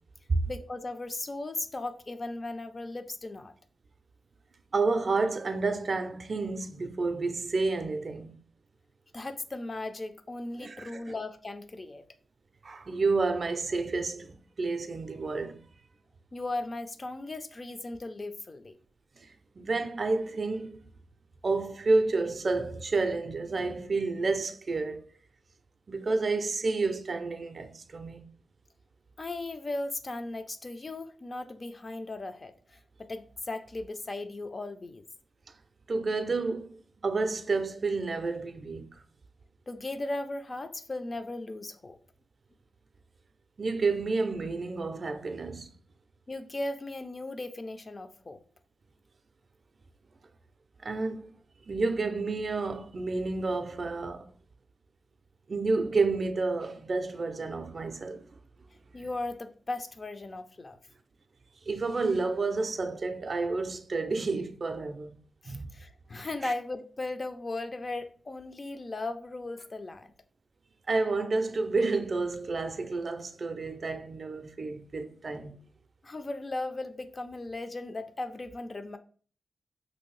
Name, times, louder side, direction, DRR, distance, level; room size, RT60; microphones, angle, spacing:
voice 1, 0.5-3.5 9.1-12.0 16.3-18.8 29.2-32.8 33.1-35.0 39.7-42.0 46.3-48.4 58.9-60.8 65.4-70.1 76.0-79.0, left 2 dB, 35° left, 0.3 m, -37 dB
voice 2, 4.7-8.4 10.6-11.1 12.6-15.6 19.2-20.8 21.4-25.1 25.9-28.2 35.9-36.8 37.0-39.0 43.6-45.7 50.8-51.3 51.7-54.3 55.5-58.3 61.7-65.2 65.4-65.7 66.4-66.5 70.9-75.6, right 3 dB, 45° right, 0.4 m, -30 dB
3.1 x 2.6 x 3.1 m
wide cardioid pair, 115°, 0 cm